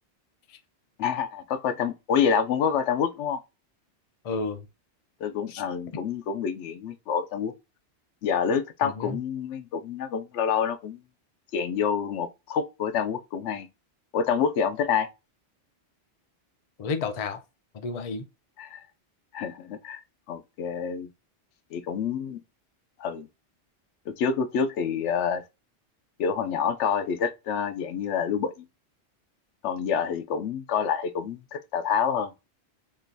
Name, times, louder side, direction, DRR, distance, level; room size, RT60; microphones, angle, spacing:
voice 1, 1.0-3.4 5.2-7.5 8.2-11.0 11.5-13.7 14.1-15.1 18.6-18.8 19.3-20.0 20.3-21.1 21.7-22.4 23.0-23.3 24.1-25.4 26.2-28.7 29.6-32.3, left 7 dB, 80° left, 0.9 m, -27 dB
voice 2, 4.2-4.7 5.5-5.6 8.8-9.2 16.8-17.4 17.7-18.3, left 4 dB, 45° left, 0.5 m, -31 dB
3.8 x 2.4 x 2.5 m
omnidirectional pair, 1.2 m